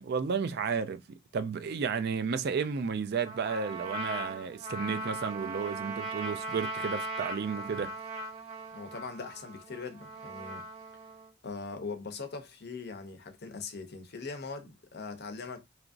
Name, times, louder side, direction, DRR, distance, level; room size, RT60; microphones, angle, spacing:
voice 1, 0.0-7.9, right 5 dB, 50° right, 0.3 m, -32 dB
Trumpet, 3.2-11.3, right 2 dB, 30° right, 1.1 m, -39 dB
voice 2, 8.7-10.7 11.4-15.6, left 4 dB, 50° left, 0.6 m, -41 dB
2.9 x 2.5 x 2.5 m
head